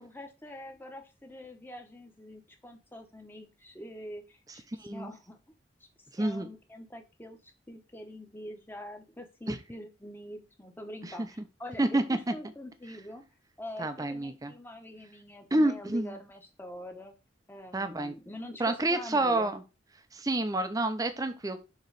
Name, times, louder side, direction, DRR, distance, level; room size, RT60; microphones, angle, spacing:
voice 1, 0.0-4.6 4.9-5.4 5.8-5.9 6.2-13.2 13.6-17.1 17.5-19.5, left 1 dB, 10° left, 4 dB, 0.9 m, -45 dB
voice 2, 4.8-5.1 6.1-6.5 9.5-9.6 11.0-11.1 11.8-12.2 13.8-14.5 15.5-16.2 17.7-18.1 18.6-19.6 20.1-21.6, right 2 dB, 20° right, 8 dB, 0.5 m, -28 dB
6.7 x 3.0 x 4.6 m, 0.29 s
head